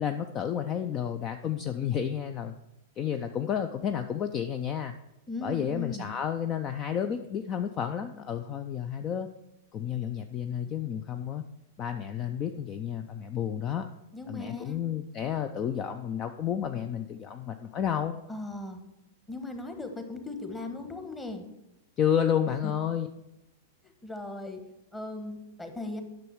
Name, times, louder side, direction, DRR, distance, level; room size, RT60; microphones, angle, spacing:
voice 1, 0.0-2.6 3.0-4.9 5.4-9.3 9.7-11.4 11.8-13.9 14.3-18.1 22.0-23.1, left 9 dB, 30° left, 8 dB, 0.4 m, -31 dB
voice 2, 5.3-6.1 14.1-14.8 18.3-18.8 19.3-21.4 22.6-22.7 24.0-24.6 24.9-26.0, left 2 dB, 10° left, 6 dB, 1.2 m, -38 dB
10.5 x 6.3 x 4.7 m, 0.89 s
figure-of-eight pair, 95°, 0 cm